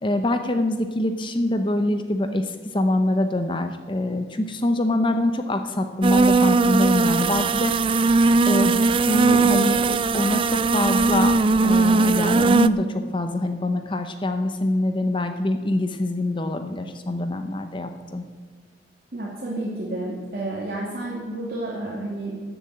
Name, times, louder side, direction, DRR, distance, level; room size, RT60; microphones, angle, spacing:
voice 1, 0.0-8.0 8.5-11.3 11.6-18.2, left 1 dB, 25° left, 7 dB, 0.7 m, -24 dB
sound 1, 6.0-12.7, right 3 dB, 30° right, 0.3 m, -19 dB
voice 2, 19.1-22.3, right 2 dB, 55° right, -5 dB, 2.5 m, -30 dB
14.5 x 7.1 x 8.5 m, 1.5 s
head